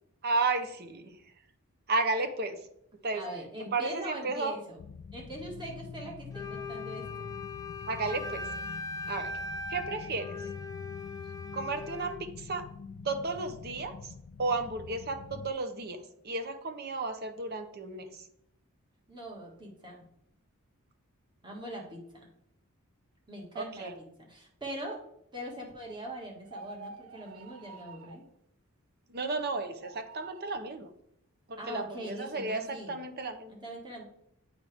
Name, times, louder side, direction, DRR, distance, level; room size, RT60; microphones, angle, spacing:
voice 1, 0.2-1.2 1.9-2.7 3.0-3.2 3.7-4.5 7.9-8.5 9.1-9.4 9.7-10.5 11.5-12.7 13.0-14.1 14.4-18.3 23.5-23.9 29.1-30.9 31.5-33.6, right 3 dB, 50° right, 8 dB, 0.8 m, -33 dB
voice 2, 3.1-4.8 5.1-7.3 9.8-10.0 19.1-20.1 21.4-22.0 23.3-25.0 25.3-28.2 31.6-33.0 33.5-34.0, right 1 dB, 20° right, -1 dB, 1.8 m, -42 dB
sound 1, 4.8-15.5, left 5 dB, 55° left, 0.3 m, -45 dB
Wind instrument woodwind instrument, 6.3-12.2, left 3 dB, 15° left, 0.6 m, -40 dB
sound 2, 26.4-28.3 29.6-30.6, right 3 dB, 70° right, 0.4 m, -48 dB
8.0 x 5.0 x 3.5 m, 0.74 s
head